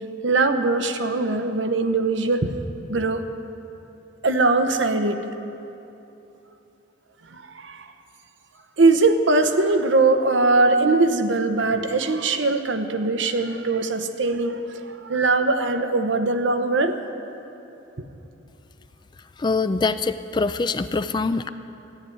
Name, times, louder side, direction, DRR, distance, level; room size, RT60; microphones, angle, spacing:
voice 1, 0.2-2.5 2.9-3.2 4.2-5.2 7.3-7.9 8.8-17.0, right 3 dB, 75° right, 8 dB, 0.9 m, -21 dB
voice 2, 19.4-21.5, left 3 dB, 20° left, 12 dB, 0.3 m, -24 dB
14.0 x 9.5 x 9.9 m, 2.9 s
head